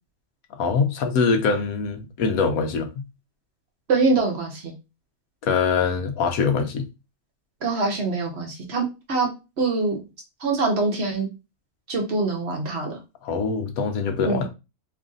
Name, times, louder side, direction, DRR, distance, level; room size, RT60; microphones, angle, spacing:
voice 1, 0.6-3.0 5.4-6.9 13.2-14.5, left 5 dB, 75° left, 1.1 m, -23 dB
voice 2, 3.9-4.7 7.6-9.3 9.6-10.0 10.4-11.3 11.9-13.0 14.2-14.4, right 3 dB, 50° right, 1.0 m, -24 dB
3.1 x 2.5 x 3.7 m
omnidirectional pair, 1.5 m